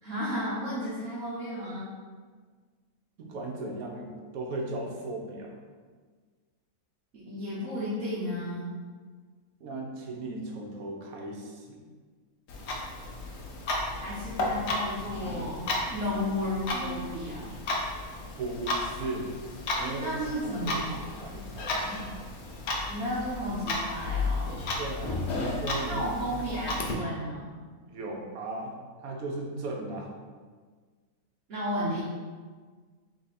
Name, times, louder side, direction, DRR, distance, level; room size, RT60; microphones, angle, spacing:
voice 1, 0.0-1.9 7.1-8.7 14.0-15.6 15.9-17.5 19.9-21.5 22.9-24.5 25.9-27.6 31.5-32.0, equal, 65° right, -9 dB, 1.2 m, -33 dB
voice 2, 3.2-5.5 9.6-11.8 18.4-19.4 19.7-20.8 21.2-22.2 24.8-26.1 26.5-26.6 27.9-28.7 29.0-30.1, right 2 dB, 85° right, 0 dB, 1.2 m, -37 dB
Clock, 12.5-26.9, left 2 dB, 60° left, 0.8 m, -33 dB
3.5 x 3.3 x 4.1 m, 1.5 s
omnidirectional pair, 1.5 m